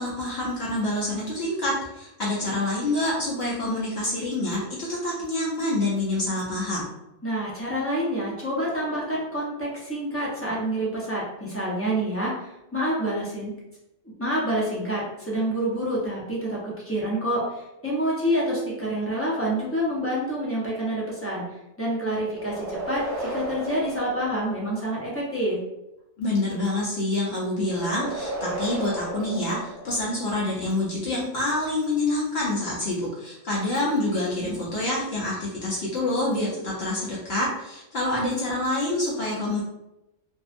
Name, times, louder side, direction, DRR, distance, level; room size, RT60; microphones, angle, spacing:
voice 1, 0.0-6.8 26.2-39.6, left 2 dB, 60° left, -6 dB, 0.9 m, -27 dB
voice 2, 7.2-13.5 14.2-25.6, right 1 dB, 15° left, -6 dB, 0.5 m, -27 dB
sound 1, 22.3-25.1 27.6-30.4, right 1 dB, 50° right, 0.6 m, -34 dB
2.6 x 2.3 x 2.4 m, 0.91 s
omnidirectional pair, 1.3 m